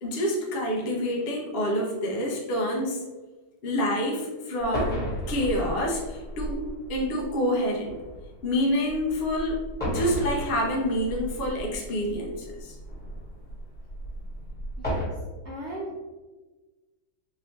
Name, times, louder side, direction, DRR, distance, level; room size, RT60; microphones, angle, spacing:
voice 1, 0.0-3.1 3.6-6.6 6.9-8.0 8.4-12.8, equal, 55° left, -1 dB, 0.6 m, -27 dB
sound 1, 4.6-15.0, equal, 5° left, 1.2 m, -35 dB
voice 2, 14.8-15.1 15.4-16.0, right 1 dB, 55° right, -6 dB, 0.8 m, -37 dB
4.0 x 2.7 x 3.1 m, 1.2 s
omnidirectional pair, 2.0 m